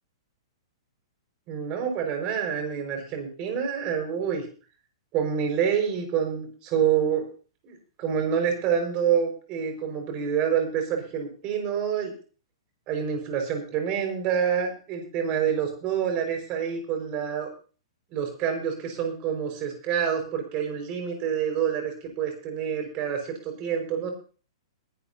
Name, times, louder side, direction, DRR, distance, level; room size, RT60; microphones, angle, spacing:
voice 1, 1.5-4.4 5.1-7.3 7.6-12.1 12.9-17.5 18.1-24.1, right 8 dB, 35° right, 4 dB, 5.3 m, -27 dB
21.5 x 11.5 x 2.8 m, 0.38 s
hypercardioid pair, 120°, 3 cm